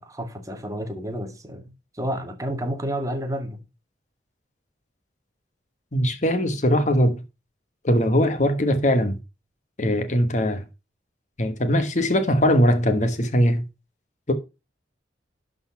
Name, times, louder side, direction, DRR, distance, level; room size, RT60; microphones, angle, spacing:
voice 1, 0.0-3.6, equal, 20° right, 1.1 m, -30 dB
voice 2, 5.9-7.2 7.8-9.2 9.8-10.6 11.4-13.6 14.3-14.4, equal, 40° left, 1.2 m, -21 dB
11.5 x 4.1 x 5.6 m
head